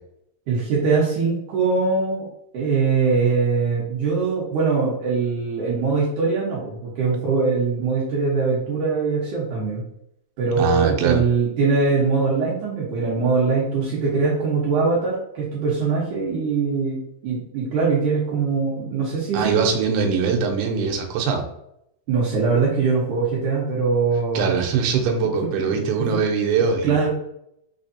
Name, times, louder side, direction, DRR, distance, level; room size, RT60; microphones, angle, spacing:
voice 1, 0.5-2.3 2.5-9.8 10.4-17.0 17.2-19.7 22.1-24.5 25.6-26.1 26.8-27.1, right 4 dB, 65° right, -7 dB, 2.2 m, -22 dB
voice 2, 10.6-11.2 19.3-21.4 24.3-27.0, right 5 dB, 85° right, 2 dB, 2.7 m, -22 dB
5.9 x 3.2 x 2.7 m, 0.77 s
omnidirectional pair, 4.6 m